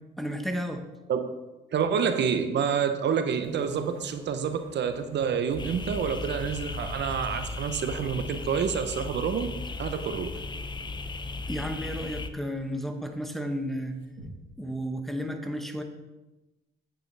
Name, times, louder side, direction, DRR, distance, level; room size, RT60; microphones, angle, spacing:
voice 1, 0.2-0.9 11.5-14.0 14.6-15.8, equal, ahead, 4 dB, 1.0 m, -33 dB
voice 2, 1.7-10.4, right 7 dB, 60° right, 8 dB, 0.8 m, -28 dB
sound 1, 3.4-14.3, right 2 dB, 75° right, 1.9 m, -46 dB
sound 2, 5.6-12.3, left 3 dB, 25° left, 0.6 m, -36 dB
8.9 x 8.9 x 3.4 m, 1.1 s
cardioid pair, 90°, 20 cm